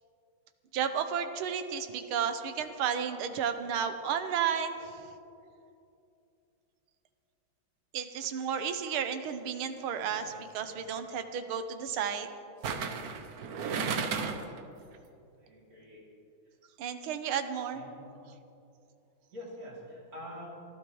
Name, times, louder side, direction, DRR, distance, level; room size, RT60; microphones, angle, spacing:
voice 1, 0.7-4.8 7.9-12.3 16.8-17.8, right 7 dB, 80° right, 8 dB, 1.7 m, -32 dB
sound 1, 10.0-10.3 12.6-14.6 14.9-15.0, right 5 dB, 60° right, 1.1 m, -34 dB
voice 2, 15.4-16.1 17.7-18.1 19.3-20.5, left 1 dB, 45° right, -5 dB, 3.5 m, -46 dB
26.5 x 12.5 x 3.1 m, 2.7 s
omnidirectional pair, 2.3 m